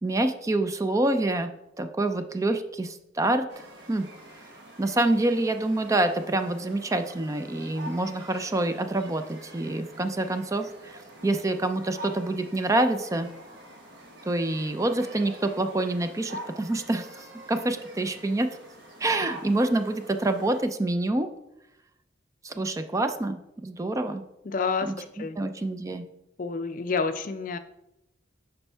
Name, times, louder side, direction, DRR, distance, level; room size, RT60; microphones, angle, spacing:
voice 1, 0.0-1.5 1.8-3.5 3.9-4.1 4.8-13.3 14.3-18.5 19.0-21.3 22.4-24.2 24.9-25.0 25.4-26.0, right 2 dB, 15° right, 8 dB, 0.4 m, -27 dB
sound 1, 3.5-20.6, right 1 dB, 65° right, 1.3 m, -46 dB
voice 2, 24.4-25.4 26.4-27.6, left 4 dB, 45° left, 10 dB, 0.4 m, -29 dB
8.5 x 5.3 x 3.4 m, 0.90 s
head